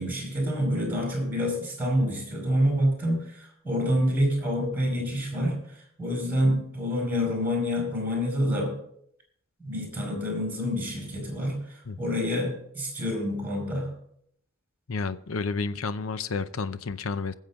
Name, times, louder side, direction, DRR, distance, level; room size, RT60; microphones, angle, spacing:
voice 1, 0.0-5.6 6.0-8.7 9.6-11.6 12.0-13.9, equal, 10° right, 5.0 m, -27 dB
voice 2, 11.9-12.2 14.9-17.3, left 4 dB, 80° left, 0.7 m, -31 dB
20.5 x 7.4 x 3.7 m
head